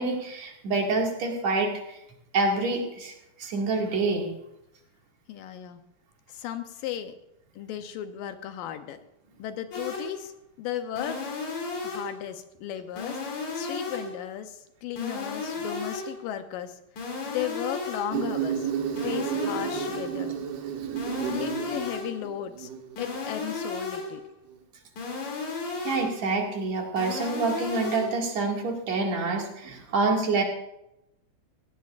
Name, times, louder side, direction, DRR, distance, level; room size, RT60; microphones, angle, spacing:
voice 1, 0.0-2.0 2.3-3.1 3.4-4.3 25.8-30.4, right 3 dB, 50° right, 0 dB, 3.0 m, -27 dB
voice 2, 5.3-5.8 6.3-7.1 7.6-9.0 9.4-11.2 11.8-17.0 17.3-20.4 21.3-22.7 23.0-24.2, left 11 dB, 75° left, 8 dB, 2.1 m, -35 dB
sound 1, 9.7-10.2 11.0-12.2 13.0-14.2 15.0-16.2 17.0-18.2 19.0-20.2 21.0-22.2 23.0-24.2 25.0-26.2 27.0-28.2, left 3 dB, 50° left, 3.8 m, -34 dB
Insect, 18.1-23.1, right 8 dB, 80° right, 3.2 m, -32 dB
18.0 x 16.5 x 2.5 m, 0.85 s
omnidirectional pair, 4.5 m